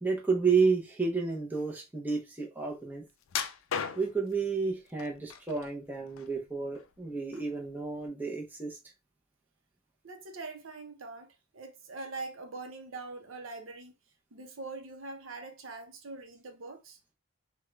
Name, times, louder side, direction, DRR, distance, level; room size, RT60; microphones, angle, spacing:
voice 1, 0.0-3.0 4.0-8.8, right 4 dB, 10° right, 0.6 m, -31 dB
sound 1, 3.3-4.3 5.0-5.7 6.1-7.0 7.3-7.5 8.1-8.2, left 7 dB, 70° left, 0.4 m, -36 dB
voice 2, 10.0-13.9 14.3-17.0, right 3 dB, 70° right, 0.7 m, -43 dB
3.6 x 2.2 x 3.0 m
head